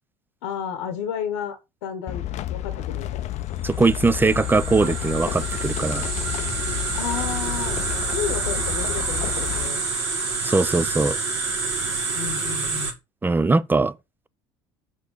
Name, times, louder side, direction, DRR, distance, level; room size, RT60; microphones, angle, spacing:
voice 1, 0.4-2.2 2.5-3.4 6.9-7.8 8.1-9.8 12.1-13.0, left 8 dB, 85° left, 1.1 m, -32 dB
sound 1, 2.1-9.7, left 13 dB, 55° left, 0.6 m, -31 dB
voice 2, 3.6-6.1 10.4-11.2 13.2-13.9, right 3 dB, 15° right, 0.6 m, -21 dB
sound 2, 3.8-12.9, right 4 dB, 90° right, 2.1 m, -28 dB
6.5 x 4.6 x 5.4 m
hypercardioid pair, 75°, 14 cm